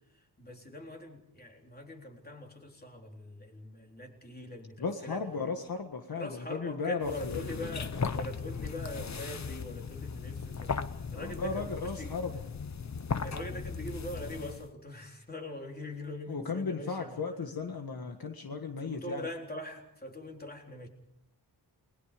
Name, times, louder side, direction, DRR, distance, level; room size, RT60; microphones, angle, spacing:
voice 1, 0.1-5.2 6.2-12.2 13.2-17.2 18.8-20.9, left 1 dB, 25° left, 1 dB, 3.9 m, -42 dB
voice 2, 4.8-7.4 11.1-12.4 16.3-19.3, left 4 dB, 60° left, 5 dB, 1.7 m, -35 dB
sound 1, 7.0-14.7, left 5 dB, 40° left, 0.9 m, -37 dB
30.0 x 21.5 x 5.1 m, 0.79 s
wide cardioid pair, 145°, 41 cm